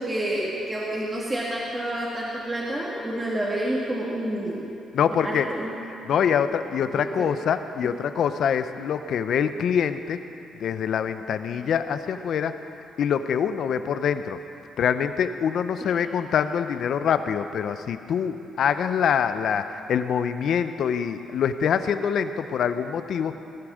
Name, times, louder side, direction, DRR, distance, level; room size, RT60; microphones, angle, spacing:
voice 1, 0.0-4.7 5.2-5.7 6.9-7.3 7.8-7.9 15.8-15.9, right 1 dB, 20° right, -6 dB, 2.3 m, -29 dB
voice 2, 4.9-5.5 6.0-10.2 10.5-12.5 13.0-14.4 14.8-23.3, left 7 dB, 65° left, 10 dB, 0.7 m, -25 dB
19.0 x 8.6 x 6.4 m, 2.9 s
cardioid pair, 90°, 0 cm